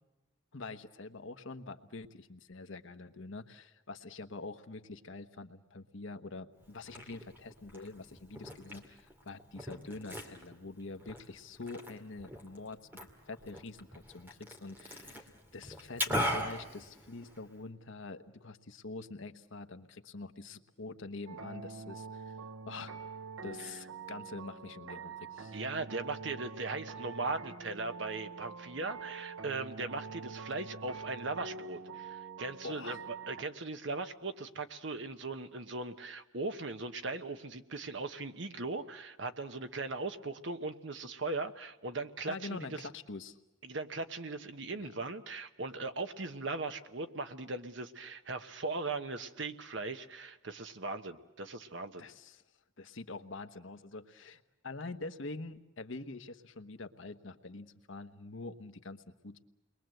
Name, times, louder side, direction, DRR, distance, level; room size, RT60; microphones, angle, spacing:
voice 1, 0.5-22.4 22.6-23.0 23.4-25.6 32.6-33.0 42.3-43.4 44.8-44.9 52.0-52.4 52.8-59.4, left 3 dB, 70° left, 8 dB, 1.1 m, -45 dB
Liquid, 6.6-17.6, equal, 10° right, 2.4 m, -41 dB
sound 1, 21.3-33.4, right 5 dB, 80° right, 0.8 m, -45 dB
voice 2, 25.5-42.9 43.6-52.1, right 3 dB, 65° right, 9 dB, 1.2 m, -39 dB
29.0 x 22.0 x 7.8 m, 1.0 s
head